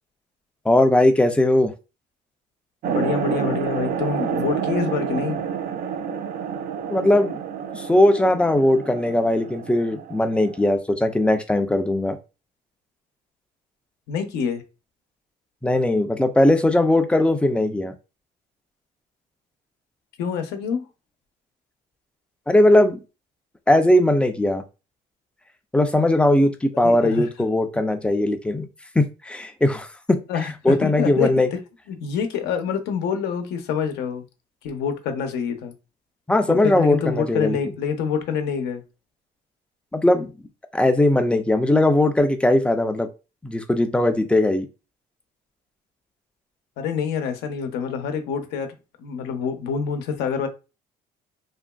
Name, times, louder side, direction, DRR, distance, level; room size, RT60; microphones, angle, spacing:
voice 1, 0.7-1.7 6.9-7.4 7.7-12.2 15.6-17.9 22.5-23.0 23.7-24.6 25.7-28.7 29.0-30.2 30.6-31.5 36.3-37.6 39.9-40.3 40.7-43.1 43.4-44.7, left 1 dB, 5° left, 0.4 m, -19 dB
voice 2, 2.8-5.4 14.1-14.6 20.2-20.8 26.8-27.3 30.3-31.3 31.9-34.2 34.6-35.7 36.5-38.8 46.8-48.7 49.0-50.5, left 6 dB, 85° left, 0.7 m, -26 dB
sound 1, 2.8-10.8, right 7 dB, 60° right, 0.4 m, -29 dB
2.9 x 2.5 x 2.3 m
cardioid pair, 110°, 17 cm